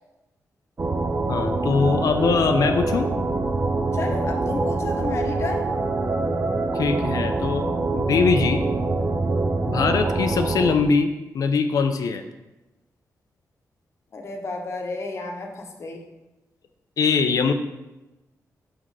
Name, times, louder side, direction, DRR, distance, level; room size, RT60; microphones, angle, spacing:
sound 1, 0.8-10.8, right 3 dB, 30° right, 0.6 m, -25 dB
voice 1, 1.3-3.1 6.7-8.6 9.7-12.2 17.0-17.5, left 5 dB, 70° left, 7 dB, 0.6 m, -22 dB
voice 2, 3.9-5.7 14.1-16.0, left 3 dB, 45° left, 2 dB, 1.0 m, -31 dB
6.2 x 5.1 x 5.5 m, 0.99 s
wide cardioid pair, 140°, 6 cm